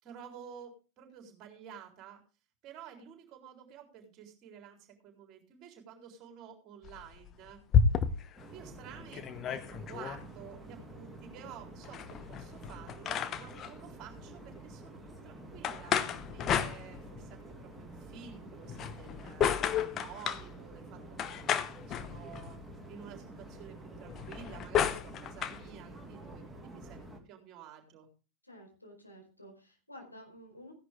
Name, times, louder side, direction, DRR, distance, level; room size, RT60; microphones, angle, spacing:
voice 1, 0.0-2.2 2.6-7.6 8.5-21.4 21.9-22.6 22.9-28.1, right 8 dB, 35° right, 4 dB, 4.0 m, -51 dB
sound 1, 6.8-8.4 8.8-8.9 9.1-10.2 11.8-13.7 15.6-17.3 18.6-20.5 21.2-22.6 24.1-25.6, left 8 dB, 30° left, 1.0 m, -32 dB
sound 2, 8.4-27.2, right 2 dB, 5° right, 2.5 m, -49 dB
voice 2, 28.4-30.7, equal, 85° left, 1 dB, 4.8 m, -52 dB
16.0 x 11.0 x 3.6 m, 0.33 s
figure-of-eight pair, 90°, 0 cm